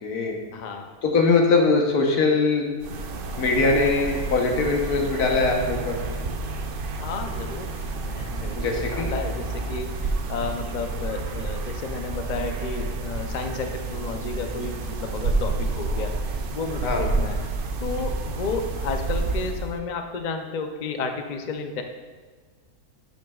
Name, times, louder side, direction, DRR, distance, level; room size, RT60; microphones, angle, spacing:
voice 1, 0.0-0.4 1.0-2.7 3.4-6.0 8.5-9.1 16.8-17.0, left 3 dB, 80° left, 1 dB, 1.5 m, -21 dB
voice 2, 0.5-0.9 7.0-8.6 8.9-17.4 17.8-21.8, left 4 dB, 60° left, 5 dB, 0.4 m, -32 dB
sound 1, 2.8-19.8, right 3 dB, 65° right, 0.5 m, -29 dB
12.0 x 6.4 x 2.3 m, 1.5 s
omnidirectional pair, 1.6 m